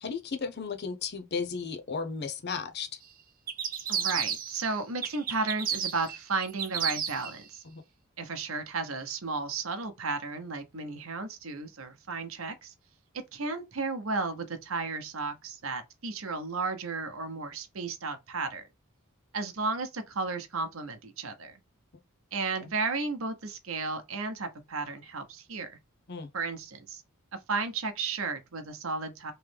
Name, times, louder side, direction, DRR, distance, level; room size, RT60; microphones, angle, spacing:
voice 1, 0.0-3.0 7.7-7.8 26.1-26.3, left 5 dB, 50° left, 0.6 m, -34 dB
sound 1, 3.5-4.7 5.0-7.3, right 8 dB, 40° right, 0.6 m, -32 dB
voice 2, 3.9-7.6 8.2-12.7 13.3-18.7 19.3-21.6 22.3-25.8 26.3-27.0 27.5-29.3, right 4 dB, 70° right, 0.9 m, -34 dB
3.2 x 3.1 x 3.4 m
head